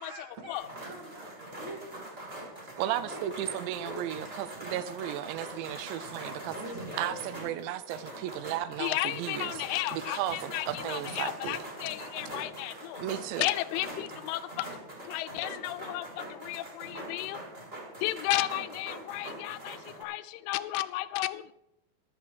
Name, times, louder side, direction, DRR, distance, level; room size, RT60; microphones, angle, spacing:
voice 1, 0.0-2.0 2.7-4.2, right 1 dB, 45° right, 1 dB, 1.7 m, -46 dB
sound 1, 0.5-20.0, right 1 dB, 20° right, 1.5 m, -43 dB
voice 2, 2.8-6.6 6.9-11.7 13.0-13.5, right 12 dB, 80° right, 14 dB, 2.6 m, -35 dB
voice 3, 8.8-13.0 13.4-14.7 15.0-17.4 18.0-21.5, left 16 dB, 85° left, 12 dB, 3.1 m, -33 dB
14.0 x 11.5 x 4.7 m, 0.84 s
omnidirectional pair, 5.7 m